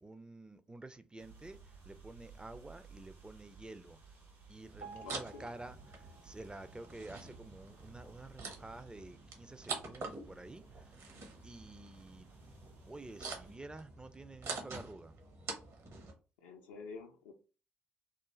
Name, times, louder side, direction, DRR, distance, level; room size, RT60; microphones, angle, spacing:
voice 1, 0.0-4.0 4.5-11.0 11.4-12.3 12.8-15.1, right 2 dB, 15° right, 0.4 m, -50 dB
sound 1, 1.2-13.6, right 4 dB, 70° right, 1.1 m, -59 dB
sound 2, 4.7-16.1, right 3 dB, 50° right, 0.8 m, -47 dB
Piano, 4.8-7.9 8.4-8.6 8.9-9.0 9.7-9.8 10.4-10.5, right 5 dB, 85° right, 0.7 m, -55 dB
voice 2, 5.0-5.5 16.4-17.3, left 4 dB, 75° left, 0.4 m, -48 dB
2.5 x 2.1 x 3.0 m
figure-of-eight pair, 45°, 6 cm